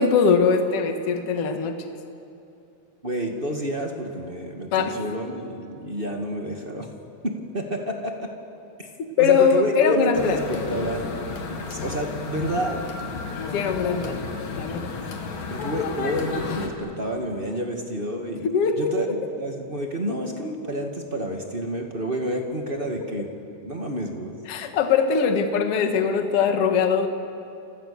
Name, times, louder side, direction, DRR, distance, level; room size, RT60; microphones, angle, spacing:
voice 1, 0.0-1.8 4.7-5.0 9.2-10.4 13.5-14.2 14.6-14.9 18.4-19.2 24.5-27.1, left 6 dB, 50° left, 5 dB, 2.3 m, -21 dB
voice 2, 3.0-6.9 7.2-8.3 8.8-8.9 9.2-11.2 11.7-12.8 15.5-18.5 18.8-19.1 19.4-23.3 23.6-24.4, equal, 20° right, 2 dB, 1.6 m, -29 dB
sound 1, 10.1-16.7, left 4 dB, 70° left, 3.8 m, -32 dB
29.5 x 27.5 x 7.1 m, 2.7 s
omnidirectional pair, 4.1 m